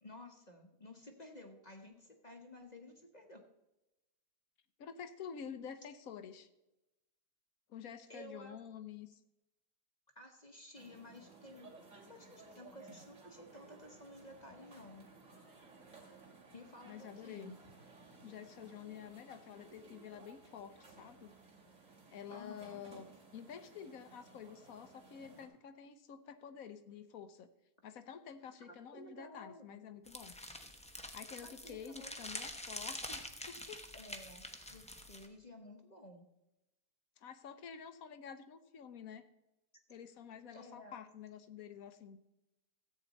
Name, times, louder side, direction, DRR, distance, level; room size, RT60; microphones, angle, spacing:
voice 1, 0.0-3.4 8.1-8.6 10.1-15.1 16.5-17.6 22.3-22.8 28.6-29.8 31.4-32.1 33.9-34.4 34.7-36.3 40.5-41.0, left 1 dB, 30° left, 4 dB, 1.0 m, -54 dB
voice 2, 4.8-6.5 7.7-9.2 16.8-17.6 18.2-21.3 22.1-23.0 23.3-27.5 27.8-30.3 31.1-33.8 37.2-39.2 39.9-42.2, left 7 dB, 65° left, 11 dB, 1.1 m, -49 dB
sound 1, 10.7-25.5, right 3 dB, 55° right, 2.8 m, -58 dB
sound 2, 30.1-35.3, left 1 dB, 5° left, 0.6 m, -46 dB
14.0 x 8.5 x 4.1 m, 0.95 s
omnidirectional pair, 1.7 m